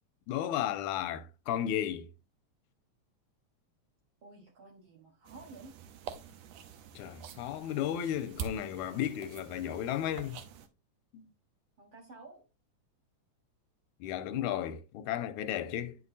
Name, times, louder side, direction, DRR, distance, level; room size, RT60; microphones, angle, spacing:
voice 1, 0.3-2.1 7.0-10.4 11.1-11.2 14.0-16.0, left 11 dB, 85° left, 2.0 m, -34 dB
voice 2, 4.2-5.7 11.8-12.4, right 3 dB, 55° right, 1.6 m, -52 dB
sound 1, 5.2-10.7, right 7 dB, 75° right, 1.9 m, -46 dB
9.5 x 5.9 x 2.6 m
omnidirectional pair, 3.4 m